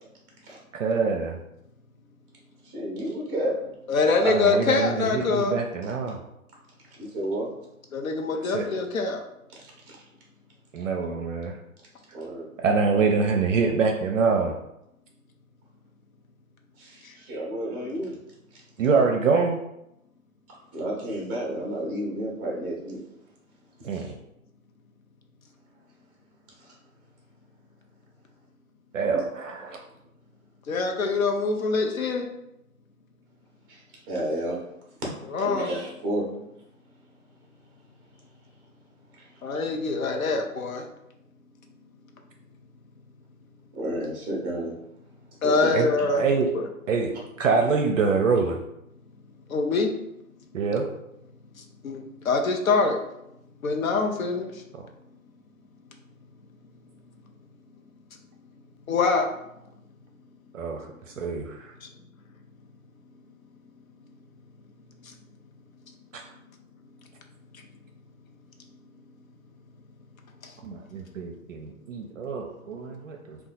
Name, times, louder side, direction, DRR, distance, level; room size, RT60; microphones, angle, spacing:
voice 1, 0.7-1.4 4.2-6.2 8.5-8.6 10.7-11.6 12.6-14.6 18.8-19.6 23.8-24.1 28.9-29.8 45.7-45.9 46.2-46.5 46.9-47.1 47.4-48.6 50.5-50.9 60.5-61.7 66.1-66.2 70.6-73.4, right 4 dB, 60° right, 2 dB, 0.5 m, -25 dB
voice 2, 2.6-3.7 7.0-7.5 12.1-12.5 16.8-18.2 20.7-23.0 23.9-24.1 29.0-29.2 33.7-33.8 34.1-34.6 35.4-36.3 39.2-39.3 43.7-44.8 45.4-45.7, right 1 dB, 15° right, -2 dB, 0.6 m, -31 dB
voice 3, 3.9-5.5 7.9-9.2 30.7-32.3 35.3-35.7 39.4-40.8 45.4-46.2 46.5-46.7 49.5-49.9 51.8-53.0 53.6-54.5 58.9-59.3, left 4 dB, 70° left, 3 dB, 0.7 m, -24 dB
2.8 x 2.3 x 4.0 m, 0.84 s
figure-of-eight pair, 125°, 43 cm